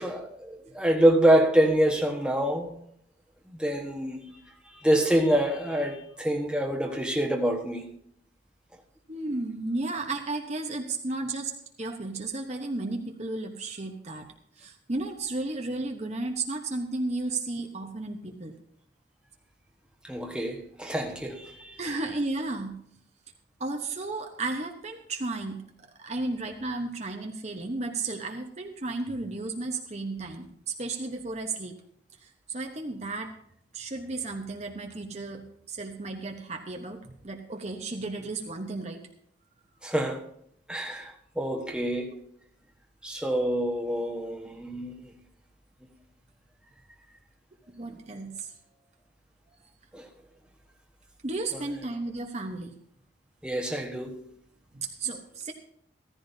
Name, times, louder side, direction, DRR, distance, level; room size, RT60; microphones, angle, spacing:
voice 1, 0.0-2.7 3.5-4.2 4.7-7.9 20.0-21.8 39.8-40.2 40.7-42.1 43.0-44.9 49.9-50.1 51.5-51.6 53.4-54.1, right 1 dB, 5° right, 1.3 m, -26 dB
voice 2, 9.1-11.5 11.8-14.3 14.6-18.5 21.8-22.8 23.6-31.7 32.2-33.3 33.7-39.0 47.7-48.5 51.2-52.7 54.7-55.5, right 2 dB, 35° right, 1.0 m, -33 dB
15.5 x 14.5 x 2.7 m
head